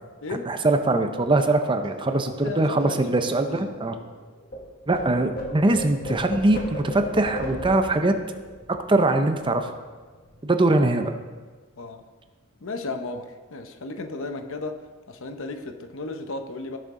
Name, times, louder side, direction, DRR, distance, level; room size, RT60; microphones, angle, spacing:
voice 1, 0.5-4.0 4.9-8.1 8.7-9.7 10.4-11.1, right 2 dB, 20° right, 7 dB, 0.6 m, -22 dB
sound 1, 1.2-4.6 4.9-9.9 10.1-10.4 10.7-11.2, left 1 dB, 40° left, 1.8 m, -38 dB
voice 2, 2.3-3.1 3.5-3.7 11.8-12.0 12.6-16.8, left 3 dB, 60° left, 7 dB, 0.8 m, -34 dB
16.5 x 6.7 x 3.7 m, 1.4 s
head